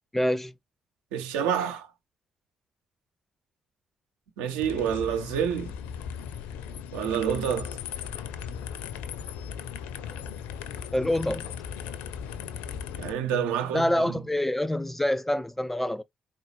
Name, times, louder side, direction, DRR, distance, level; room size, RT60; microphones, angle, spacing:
voice 1, 0.1-0.5 10.9-11.5 13.7-16.0, left 1 dB, 10° left, 0.5 m, -26 dB
voice 2, 1.1-1.9 4.4-5.7 6.9-7.8 13.0-14.2, right 8 dB, 70° right, 1.0 m, -28 dB
sound 1, 4.6-13.1, left 8 dB, 65° left, 0.6 m, -37 dB
4.3 x 3.8 x 3.0 m
figure-of-eight pair, 40°, 3 cm